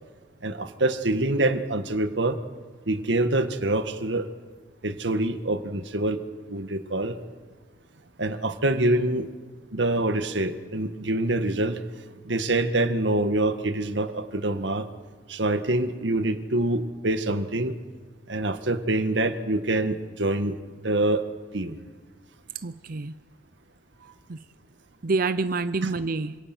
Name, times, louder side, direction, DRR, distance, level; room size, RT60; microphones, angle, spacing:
voice 1, 0.4-2.4 2.9-4.3 4.8-6.2 6.5-7.2 8.2-9.3 9.7-11.8 12.2-14.9 15.3-17.8 18.3-20.5 20.8-21.2 21.5-21.8 24.0-24.1 25.8-25.9, right 2 dB, 85° right, 8 dB, 1.7 m, -25 dB
voice 2, 22.5-23.1 24.3-24.4 25.0-26.4, right 3 dB, 55° right, 12 dB, 0.6 m, -27 dB
27.0 x 26.5 x 6.2 m, 1.5 s
head